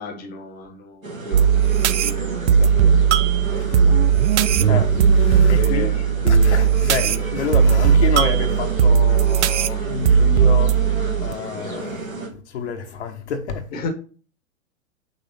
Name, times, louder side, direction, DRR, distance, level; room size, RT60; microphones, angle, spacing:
voice 1, 0.0-1.5 1.9-3.7 4.0-4.1 5.5-6.0 13.7-13.9, left 3 dB, 20° left, 1.0 m, -35 dB
sound 1, 1.0-12.3, right 3 dB, 85° right, 1.9 m, -31 dB
sound 2, 1.3-11.3, right 7 dB, 60° right, 0.5 m, -17 dB
voice 2, 4.6-10.8 11.2-12.0 12.5-13.7, left 5 dB, 55° left, 1.1 m, -29 dB
5.6 x 3.5 x 5.4 m
figure-of-eight pair, 100°, 40 cm